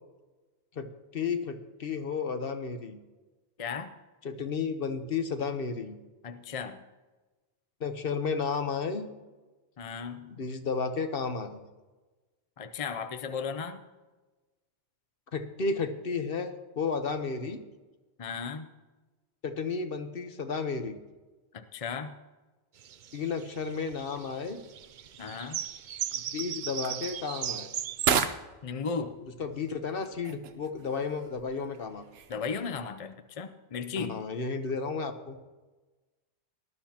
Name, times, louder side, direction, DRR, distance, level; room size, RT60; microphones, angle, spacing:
voice 1, 0.8-3.0 4.2-6.0 7.8-9.1 10.3-11.6 15.3-17.6 19.4-21.0 23.1-24.6 26.1-27.7 29.4-32.0 34.0-35.4, left 5 dB, 60° left, 8 dB, 1.1 m, -33 dB
voice 2, 3.6-3.9 6.2-6.8 9.8-10.4 12.6-13.8 18.2-18.7 21.5-22.1 25.2-25.6 28.6-29.2 32.3-34.2, left 5 dB, 40° left, 9 dB, 0.6 m, -35 dB
sound 1, 22.8-28.1, right 9 dB, 55° right, 0.6 m, -37 dB
sound 2, 23.7-32.9, right 7 dB, 70° right, 1.0 m, -37 dB
19.0 x 12.0 x 2.9 m, 1.2 s
omnidirectional pair, 1.1 m